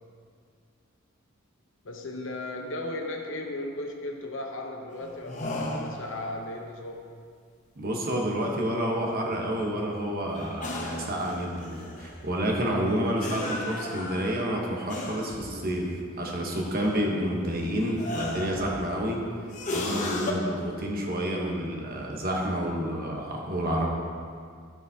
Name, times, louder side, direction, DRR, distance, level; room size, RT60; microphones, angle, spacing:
voice 1, 1.8-7.0, left 1 dB, 65° left, 2 dB, 0.9 m, -36 dB
sound 1, 5.0-6.2 10.4-12.2 13.2-15.5 16.5-17.4 17.8-19.0 19.5-20.3, left 2 dB, 40° left, 0.8 m, -35 dB
voice 2, 7.8-15.9 16.2-19.2 19.7-23.9, equal, 45° right, -1 dB, 1.1 m, -29 dB
13.0 x 4.9 x 2.8 m, 2.2 s
head